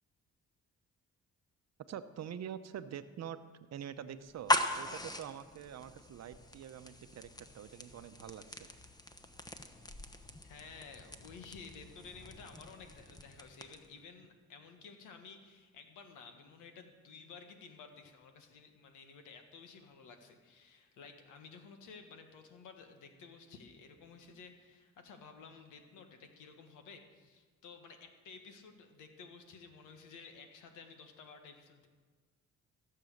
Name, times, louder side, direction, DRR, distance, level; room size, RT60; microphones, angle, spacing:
voice 1, 1.9-3.4 3.7-8.7, right 9 dB, 60° right, 11 dB, 0.8 m, -45 dB
sound 1, 4.3-14.0, left 1 dB, 15° left, 1.0 m, -40 dB
voice 2, 10.4-31.9, left 5 dB, 90° left, 6 dB, 1.6 m, -53 dB
16.0 x 7.6 x 6.6 m, 1.5 s
cardioid pair, 90°, 30 cm